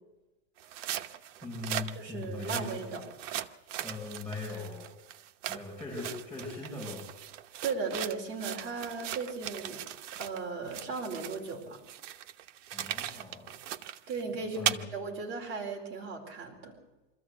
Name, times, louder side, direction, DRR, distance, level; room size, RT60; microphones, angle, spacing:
sound 1, 0.6-10.4 10.7-14.8, right 11 dB, 80° right, 1.1 m, -38 dB
voice 1, 1.4-2.8 3.8-4.9 5.5-7.1 12.7-13.5 14.5-14.8, left 3 dB, 5° left, -6 dB, 5.6 m, -40 dB
voice 2, 1.9-3.0 5.5-5.6 7.6-9.8 10.2-11.8 14.1-16.7, right 4 dB, 30° right, 1 dB, 4.5 m, -36 dB
25.0 x 14.0 x 8.1 m, 1.1 s
supercardioid pair, 155°, 36 cm